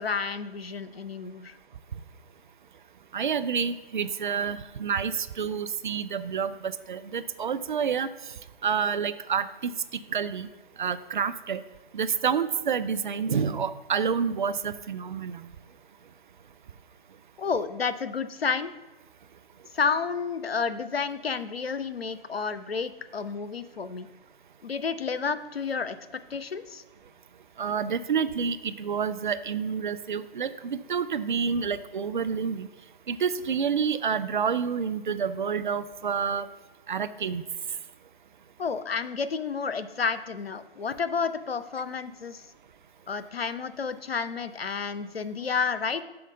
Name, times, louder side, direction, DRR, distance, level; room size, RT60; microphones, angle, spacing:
voice 1, 0.0-1.5 17.4-18.7 19.7-24.1 24.6-26.0 26.3-26.8 38.6-42.4 43.1-46.0, left 5 dB, 85° left, 12 dB, 0.6 m, -30 dB
voice 2, 3.1-8.1 8.6-10.5 10.8-11.6 11.9-15.5 27.6-32.7 33.1-36.5 36.9-37.4, right 6 dB, 55° right, 13 dB, 0.5 m, -28 dB
5.8 x 4.5 x 6.3 m, 1.1 s
figure-of-eight pair, 140°, 29 cm